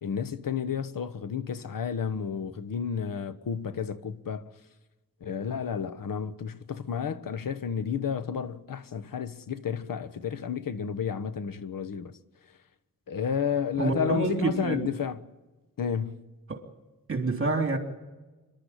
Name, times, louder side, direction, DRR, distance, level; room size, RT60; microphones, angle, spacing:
voice 1, 0.0-4.4 5.2-12.1 13.1-15.2 15.8-16.2, left 7 dB, 75° left, 1.2 m, -31 dB
voice 2, 13.8-14.9 16.5-16.6 17.1-17.8, right 3 dB, 40° right, 3.3 m, -27 dB
25.5 x 12.0 x 9.9 m
wide cardioid pair, 100°, 34 cm